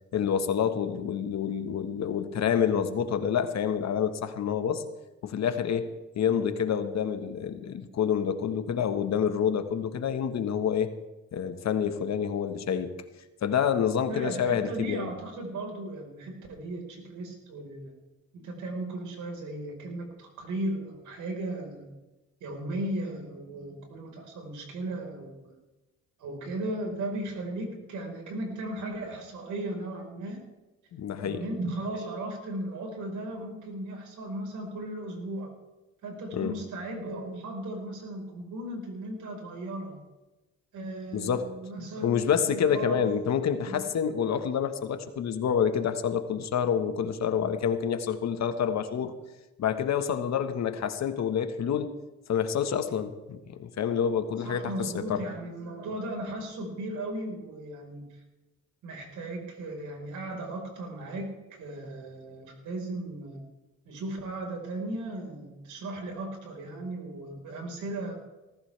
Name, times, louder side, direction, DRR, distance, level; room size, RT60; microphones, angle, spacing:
voice 1, 0.1-4.8 5.2-10.9 11.3-13.0 13.4-15.1 30.9-31.4 36.3-36.5 41.1-41.5 42.0-49.1 49.6-51.9 52.3-55.2, left 8 dB, 60° left, 8 dB, 1.5 m, -28 dB
voice 2, 14.1-17.9 18.3-21.9 22.4-25.5 26.2-30.4 31.2-35.5 36.0-40.0 40.7-43.1 43.6-43.8 54.4-58.2 58.8-61.3 61.6-63.4 63.9-68.1, right 1 dB, 75° right, 2 dB, 4.6 m, -36 dB
19.0 x 15.0 x 3.4 m, 1.1 s
cardioid pair, 90°, 30 cm